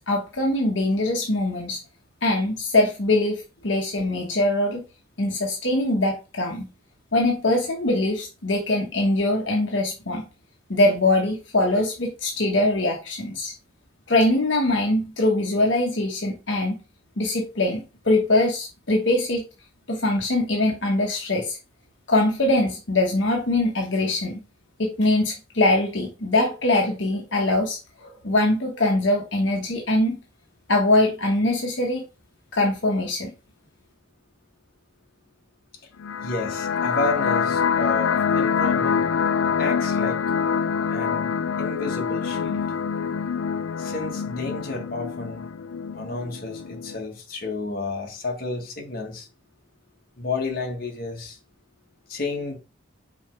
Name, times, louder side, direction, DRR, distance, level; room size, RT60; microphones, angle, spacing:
voice 1, 0.0-1.8 2.2-4.8 5.2-6.7 7.1-10.2 10.7-13.5 14.1-16.8 17.2-19.4 19.9-21.6 22.1-24.4 24.8-30.2 30.7-32.0 32.5-33.3, left 2 dB, 65° left, 1.2 m, -22 dB
sound 1, 36.0-47.0, left 6 dB, 85° left, 0.5 m, -25 dB
voice 2, 36.2-39.1 39.6-40.2 40.9-41.3 41.6-42.6 43.8-45.5 45.9-49.3 50.2-51.4 52.1-52.6, left 3 dB, 50° left, 1.6 m, -31 dB
5.6 x 4.2 x 4.5 m
head